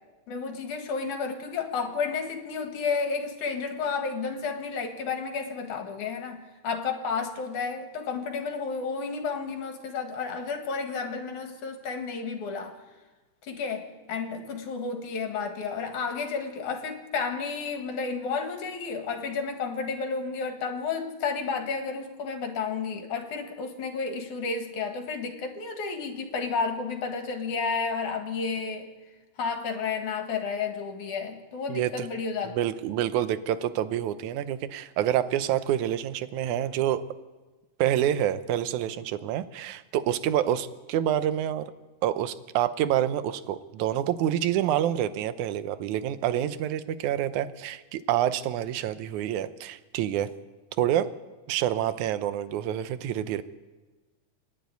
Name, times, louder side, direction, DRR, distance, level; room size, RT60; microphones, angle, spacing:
voice 1, 0.3-12.8 13.4-28.9 29.4-32.6, left 5 dB, 65° left, 3.1 m, -31 dB
voice 2, 31.7-32.1 32.6-37.0 37.8-41.7 42.0-50.3 50.8-51.1 51.5-53.4, right 11 dB, 75° right, 2.1 m, -27 dB
27.0 x 10.5 x 9.4 m
omnidirectional pair, 3.8 m